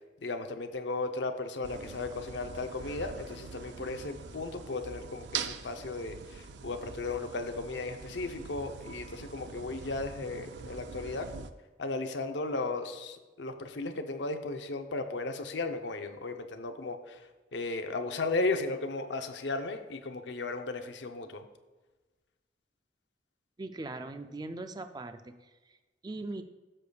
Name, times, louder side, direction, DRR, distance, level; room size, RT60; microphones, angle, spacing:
voice 1, 0.2-11.3 11.8-21.4, left 3 dB, 85° left, 7 dB, 0.7 m, -35 dB
sound 1, 1.6-11.5, right 6 dB, 80° right, 0.5 m, -43 dB
voice 2, 23.6-25.4 26.0-26.4, right 2 dB, 25° right, 9 dB, 0.4 m, -39 dB
13.0 x 6.7 x 2.3 m, 1.2 s
head